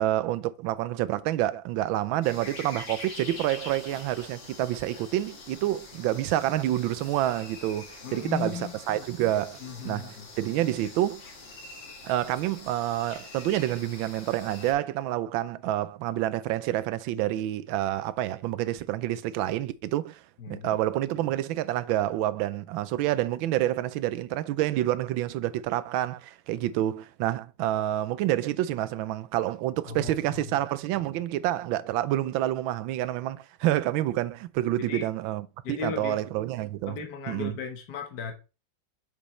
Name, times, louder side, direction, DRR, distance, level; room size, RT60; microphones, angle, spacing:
voice 1, 0.0-9.6 9.8-11.2 12.0-20.2 20.5-37.0 37.3-37.6, right 13 dB, 90° right, 1.4 m, -28 dB
sound 1, 2.2-14.7, left 2 dB, 80° left, 2.7 m, -45 dB
voice 2, 8.0-9.0 9.6-10.3 20.4-20.7 29.9-30.6 34.8-35.1 35.6-36.2 36.9-38.3, left 6 dB, 60° left, 1.7 m, -36 dB
7.3 x 5.1 x 3.2 m
omnidirectional pair, 2.1 m